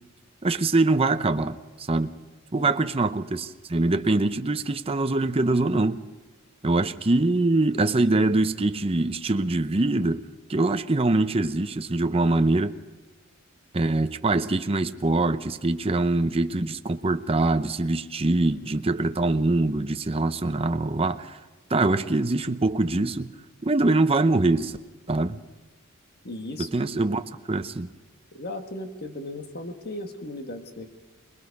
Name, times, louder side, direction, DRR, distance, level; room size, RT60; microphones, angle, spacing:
voice 1, 0.4-2.1 2.5-6.0 6.6-10.2 10.5-12.8 13.7-21.4 21.7-23.3 23.6-24.8 25.1-25.4 26.6-27.9, right 2 dB, 25° right, 0.7 m, -23 dB
voice 2, 26.2-26.7 28.3-30.9, left 1 dB, 45° left, 1.6 m, -36 dB
25.5 x 20.5 x 5.4 m
head